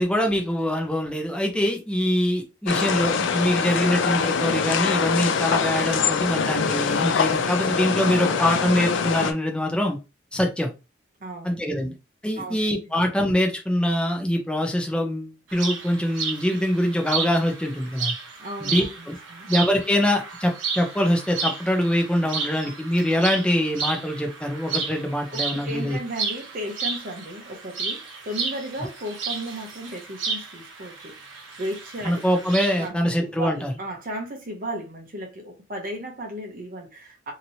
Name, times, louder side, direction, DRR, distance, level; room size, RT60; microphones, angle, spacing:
voice 1, 0.0-10.0 10.3-10.7 11.4-11.9 12.2-18.1 18.6-19.2 19.5-26.0 32.0-33.7, equal, 5° left, 0.6 m, -24 dB
sound 1, 2.7-9.3, left 5 dB, 75° left, 0.4 m, -23 dB
voice 2, 11.2-11.5 12.4-12.7 18.4-19.5 25.3-32.5 32.8-32.9 33.2-37.3, right 1 dB, 45° right, 0.8 m, -35 dB
sound 2, 15.5-32.9, right 5 dB, 80° right, 0.9 m, -32 dB
3.0 x 2.8 x 2.7 m
head